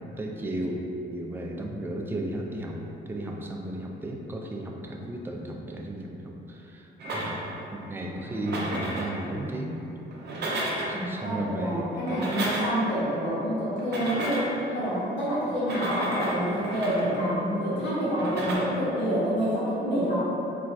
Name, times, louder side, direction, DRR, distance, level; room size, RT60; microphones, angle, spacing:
voice 1, 0.2-0.9 1.1-2.8 3.1-7.4 7.7-9.8 10.9-11.9, right 1 dB, 10° right, 0 dB, 0.3 m, -34 dB
sound 1, 7.0-7.6 8.3-9.2 10.1-11.0 11.9-12.9 13.8-14.6 15.5-17.3 18.1-18.5, right 1 dB, 55° right, 0.6 m, -32 dB
voice 2, 10.9-14.4 14.7-20.2, equal, 65° left, -10 dB, 1.0 m, -27 dB
4.0 x 2.2 x 2.5 m, 2.9 s
cardioid pair, 90°, 20 cm